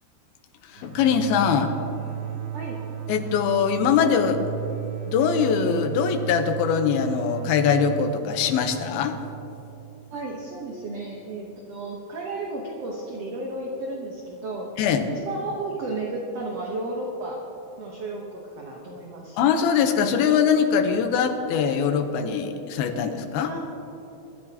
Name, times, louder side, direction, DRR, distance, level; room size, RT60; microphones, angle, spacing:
voice 1, 0.6-1.7 3.1-4.4 5.1-9.2 14.8-15.1 19.4-23.5, left 7 dB, 90° left, 6 dB, 2.8 m, -22 dB
sound 1, 0.8-10.2, right 9 dB, 80° right, 2.8 m, -35 dB
voice 2, 10.1-14.7 15.1-17.4 17.8-19.4 23.5-23.6, right 2 dB, 60° right, -1 dB, 1.7 m, -33 dB
23.0 x 13.5 x 2.9 m, 2.8 s
omnidirectional pair, 4.3 m